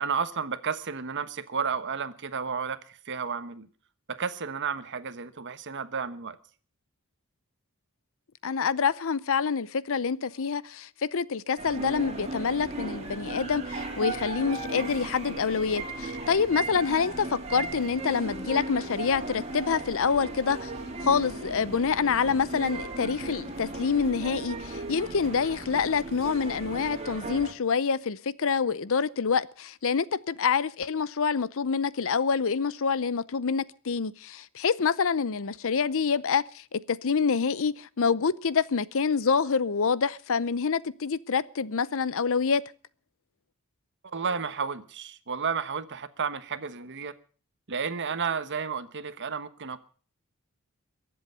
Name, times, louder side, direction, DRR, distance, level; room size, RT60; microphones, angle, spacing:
voice 1, 0.0-3.7 4.1-6.4 44.1-47.1 47.7-49.8, right 6 dB, 55° right, 1.1 m, -32 dB
voice 2, 8.4-20.7 21.0-42.6, left 5 dB, 65° left, 0.7 m, -27 dB
sound 1, 11.6-27.5, right 2 dB, 30° right, 2.9 m, -36 dB
22.0 x 7.8 x 6.8 m
head